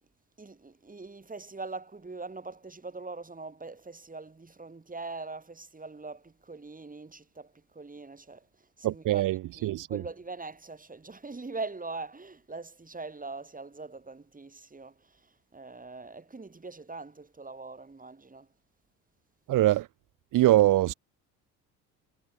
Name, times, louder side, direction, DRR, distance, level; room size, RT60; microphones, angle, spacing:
voice 1, 0.4-18.5, right 3 dB, 20° right, 5.0 m, -42 dB
voice 2, 8.8-10.0 19.5-19.9 20.3-20.9, right 15 dB, 45° right, 0.8 m, -23 dB
hypercardioid pair, 65°, 45 cm